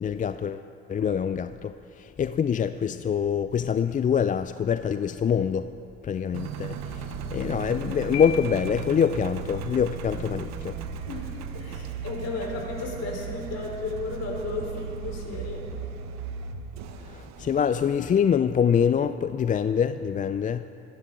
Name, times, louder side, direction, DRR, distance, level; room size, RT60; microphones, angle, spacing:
voice 1, 0.0-5.7 6.0-10.8 17.0-20.6, left 7 dB, 25° left, 0.4 m, -25 dB
Engine, 6.3-18.0, right 6 dB, 60° right, 1.1 m, -36 dB
Piano, 8.1-9.1, left 8 dB, 70° left, 0.9 m, -38 dB
voice 2, 11.5-15.6, left 3 dB, 50° left, 4.2 m, -34 dB
25.5 x 11.0 x 3.9 m
hypercardioid pair, 55°, 31 cm